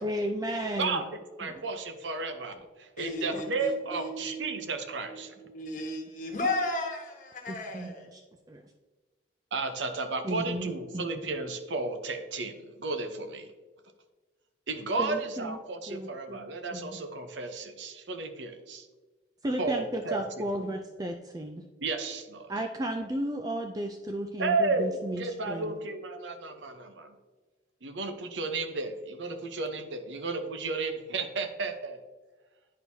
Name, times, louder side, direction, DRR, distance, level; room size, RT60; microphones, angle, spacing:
voice 1, 0.0-1.0 1.4-1.5 3.3-3.4 7.5-8.2 8.5-8.6 10.2-11.1 15.0-15.6 15.9-16.4 16.7-17.0 19.4-21.6 22.5-25.7, right 1 dB, 20° right, 0.3 m, -34 dB
voice 2, 1.4-5.3 9.5-13.5 14.7-18.9 19.6-20.5 21.8-22.5 24.4-24.9 25.2-27.2 27.8-32.0, right 3 dB, 75° right, 0.7 m, -33 dB
voice 3, 3.0-4.6 5.1-8.2, left 1 dB, 40° left, 1.2 m, -35 dB
10.0 x 4.6 x 2.7 m
head